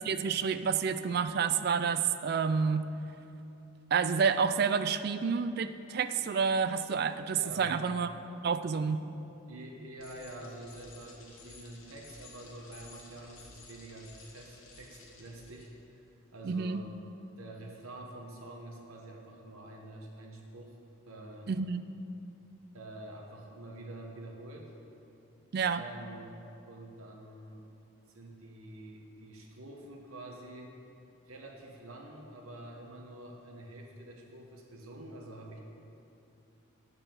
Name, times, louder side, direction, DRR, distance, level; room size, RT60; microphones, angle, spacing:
voice 1, 0.0-2.9 3.9-8.1 8.4-9.0 16.4-16.8 21.5-21.8 25.5-25.8, right 6 dB, 45° right, 11 dB, 0.3 m, -29 dB
voice 2, 7.3-7.8 9.5-16.0 16.3-16.9 17.4-20.8 21.1-21.5 22.7-24.7 25.8-26.3 26.7-27.7 28.1-30.7 31.3-35.6, right 1 dB, 85° right, 1 dB, 1.1 m, -47 dB
Bicycle, 10.0-15.7, left 3 dB, 70° left, 1.4 m, -54 dB
8.1 x 5.5 x 7.1 m, 2.8 s
head